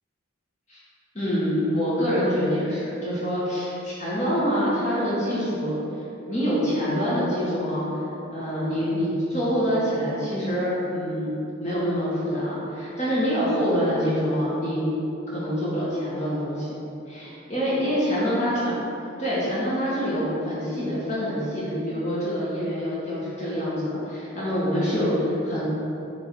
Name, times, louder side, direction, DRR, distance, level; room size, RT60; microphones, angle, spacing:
voice 1, 1.1-7.9 8.3-11.3 11.6-14.9 15.3-16.7 17.1-18.7 19.2-25.6, equal, 35° left, -9 dB, 1.6 m, -26 dB
9.0 x 3.8 x 4.7 m, 3.0 s
head